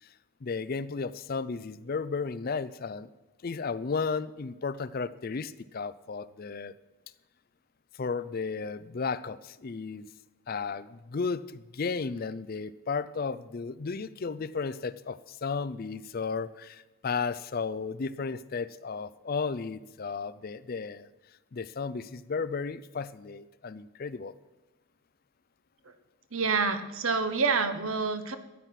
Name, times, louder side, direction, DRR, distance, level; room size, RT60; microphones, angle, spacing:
voice 1, 0.4-3.1 3.4-6.7 8.0-10.1 10.5-21.1 21.5-24.3, left 5 dB, 40° left, 16 dB, 0.4 m, -34 dB
voice 2, 26.3-28.4, right 4 dB, 65° right, 10 dB, 1.1 m, -27 dB
13.5 x 9.6 x 5.8 m, 1.1 s
head